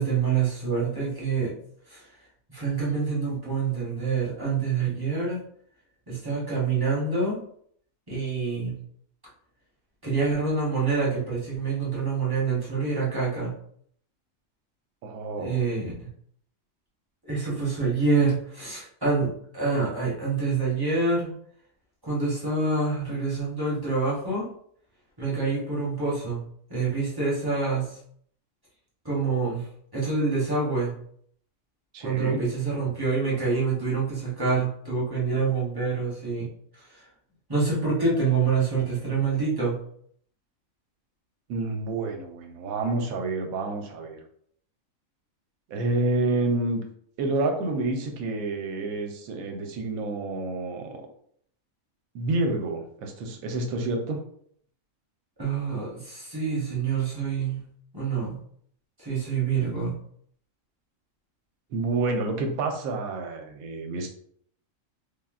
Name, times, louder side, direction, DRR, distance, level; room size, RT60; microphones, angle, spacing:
voice 1, 0.0-1.5 1.9-2.0 2.5-5.4 6.1-7.4 8.1-8.7 10.0-13.5 15.4-16.1 17.2-21.3 22.0-24.5 25.2-26.4 26.7-28.0 29.0-29.7 29.9-30.9 32.0-36.5 37.5-39.8 55.4-57.6 57.9-58.4 59.0-60.0, right 4 dB, 20° right, -6 dB, 0.7 m, -26 dB
voice 2, 15.0-15.6 31.9-32.4 41.5-44.2 45.7-46.8 47.2-51.0 52.1-54.2 61.7-64.1, right 2 dB, 85° right, 4 dB, 1.0 m, -28 dB
3.5 x 2.1 x 2.4 m, 0.63 s
omnidirectional pair, 1.5 m